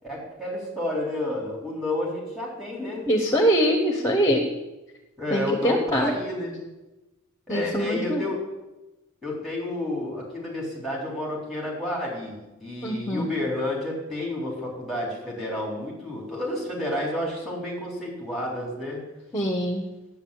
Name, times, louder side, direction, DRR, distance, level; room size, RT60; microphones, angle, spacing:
voice 1, 0.0-3.1 5.2-6.6 7.5-8.4 9.2-19.0, left 1 dB, ahead, -3 dB, 4.0 m, -30 dB
voice 2, 3.1-4.4 5.3-6.2 7.5-8.2 12.8-13.3 19.3-19.8, equal, 15° left, 4 dB, 1.0 m, -23 dB
9.1 x 8.2 x 8.7 m, 1.0 s
head